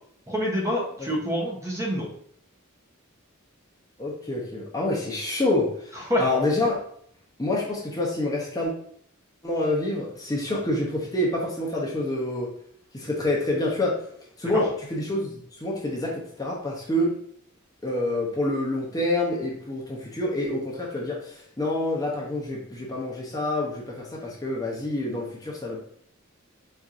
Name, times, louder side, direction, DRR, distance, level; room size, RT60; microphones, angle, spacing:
voice 1, 0.3-2.1 6.1-6.2 14.5-14.6, equal, 15° right, -2 dB, 0.7 m, -26 dB
voice 2, 4.0-6.8 7.4-8.7 9.4-12.5 12.9-14.0 14.4-17.2 17.8-25.8, left 1 dB, 20° left, -3 dB, 0.6 m, -27 dB
4.2 x 2.5 x 2.4 m, 0.64 s
head